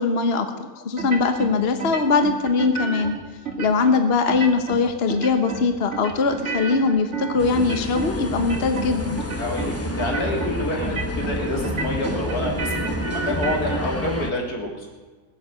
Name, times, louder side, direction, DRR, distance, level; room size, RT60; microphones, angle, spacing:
voice 1, 0.0-3.1 3.6-9.2, left 4 dB, 45° left, 8 dB, 1.3 m, -21 dB
sound 1, 1.0-1.5 1.8-3.1 3.5-4.0 4.3-4.8 5.1-5.6 5.9-8.1 8.4-8.9 9.2-9.7 10.0-10.5 10.8-11.4 11.6-13.8, right 5 dB, 50° right, 2.5 m, -30 dB
sound 2, 7.4-14.3, left 1 dB, 10° left, 1.0 m, -29 dB
voice 2, 9.4-14.9, left 1 dB, 85° left, 0 dB, 3.7 m, -27 dB
20.0 x 8.3 x 7.9 m, 1.4 s
omnidirectional pair, 1.6 m